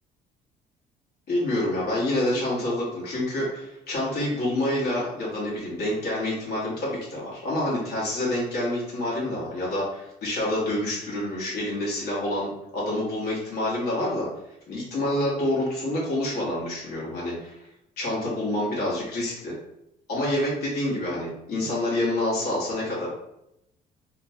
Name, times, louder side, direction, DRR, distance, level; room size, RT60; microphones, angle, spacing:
voice 1, 1.3-14.3 14.7-17.7 18.0-19.5 20.1-23.1, left 1 dB, 70° left, -6 dB, 1.3 m, -27 dB
2.9 x 2.2 x 2.7 m, 0.83 s
cardioid pair, 110°, 17 cm